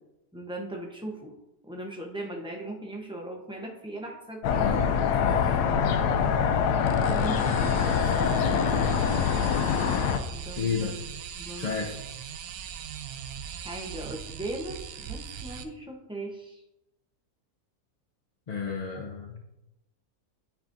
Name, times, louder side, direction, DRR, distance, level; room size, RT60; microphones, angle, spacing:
voice 1, 0.3-1.3 1.6-4.6 7.1-7.4 10.3-11.0 11.4-11.8 13.6-16.6, right 1 dB, 5° right, 0 dB, 0.5 m, -38 dB
sound 1, 4.4-10.2, left 7 dB, 85° left, 1.2 m, -24 dB
voice 2, 4.6-5.7 7.4-8.9 10.6-11.0 11.6-12.0 18.5-19.4, left 5 dB, 60° left, 0 dB, 0.4 m, -33 dB
sound 2, 6.8-15.6, right 8 dB, 75° right, 1.0 m, -40 dB
9.9 x 5.0 x 2.6 m, 0.92 s
omnidirectional pair, 1.7 m